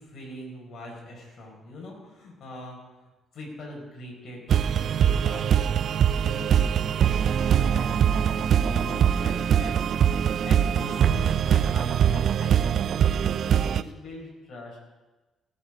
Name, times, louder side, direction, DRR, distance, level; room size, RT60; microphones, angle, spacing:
voice 1, 0.0-2.8 3.3-5.8 6.1-10.2 10.4-13.0 13.4-14.8, left 1 dB, 65° left, -1 dB, 4.8 m, -41 dB
sound 1, 4.5-13.8, right 9 dB, 65° right, 0.4 m, -22 dB
17.0 x 7.6 x 5.1 m, 1.2 s
cardioid pair, 90°, 0 cm